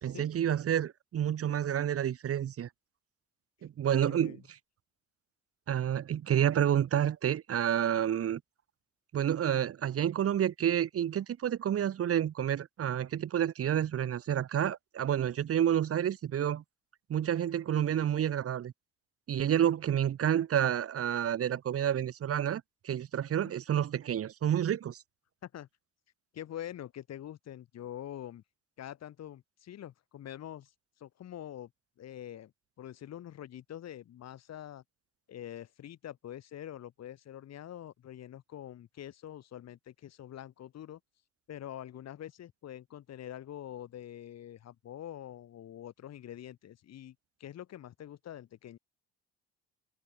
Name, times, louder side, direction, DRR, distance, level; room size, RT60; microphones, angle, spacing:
voice 1, 0.0-2.7 3.6-4.4 5.7-8.4 9.1-16.6 17.1-18.7 19.3-25.0, right 10 dB, 50° right, 1.6 m, -29 dB
voice 2, 4.0-4.4 23.4-23.5 25.4-25.7 26.3-28.4 28.8-30.7 31.0-31.7 32.0-32.5 32.8-34.8 35.3-41.0 41.5-48.8, left 11 dB, 60° left, 2.9 m, -45 dB
supercardioid pair, 80°, 30 cm